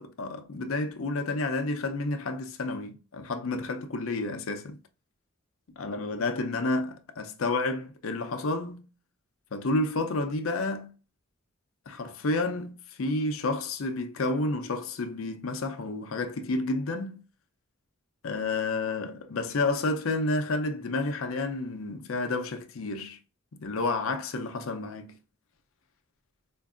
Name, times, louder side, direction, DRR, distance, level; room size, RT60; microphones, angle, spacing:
voice 1, 0.0-4.8 5.8-8.9 9.5-10.9 11.9-17.2 18.2-23.2 23.5-25.2, left 2 dB, 90° left, 0.6 m, -30 dB
4.5 x 2.5 x 2.4 m
head